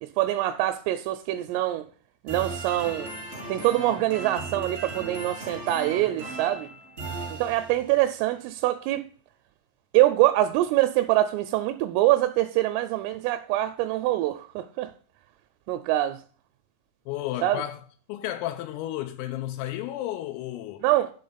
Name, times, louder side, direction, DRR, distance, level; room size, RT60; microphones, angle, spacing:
voice 1, 0.0-1.9 2.2-3.1 3.5-6.7 7.3-9.0 9.9-14.9 15.7-16.2 17.4-17.6 20.8-21.1, right 15 dB, 85° right, 3.0 m, -24 dB
sound 1, 2.3-8.0, right 3 dB, 50° right, 0.7 m, -37 dB
voice 2, 17.1-17.8 18.1-20.8, left 13 dB, 85° left, 3.2 m, -32 dB
11.0 x 3.7 x 5.6 m
omnidirectional pair, 6.0 m